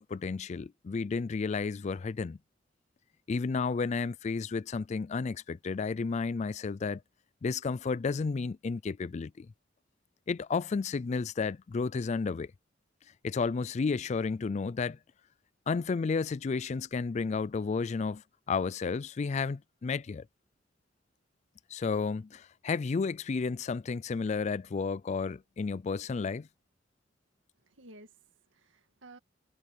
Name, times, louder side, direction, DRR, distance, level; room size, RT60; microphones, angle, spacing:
voice 1, 0.0-2.4 3.3-7.0 7.4-9.5 10.3-12.5 13.2-15.0 15.7-18.2 18.5-20.3 21.7-26.5, left 4 dB, 35° left, 0.3 m, -32 dB
voice 2, 27.6-29.2, right 2 dB, 90° right, 2.0 m, -54 dB
head